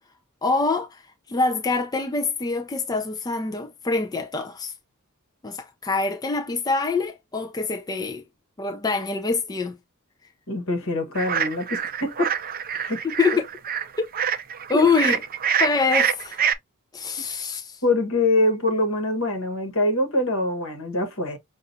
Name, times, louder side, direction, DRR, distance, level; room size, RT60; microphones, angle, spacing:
voice 1, 0.4-4.7 5.4-8.2 8.6-9.8 13.0-13.4 14.0-14.1 14.7-15.2 15.6-16.4 16.9-17.8, left 4 dB, 20° left, 0.4 m, -25 dB
voice 2, 10.5-12.4 12.7-13.0 14.7-14.8 17.8-21.4, left 2 dB, 65° left, 1.4 m, -24 dB
sound 1, 11.1-16.5, right 8 dB, 40° right, 0.5 m, -25 dB
5.8 x 2.4 x 2.6 m
head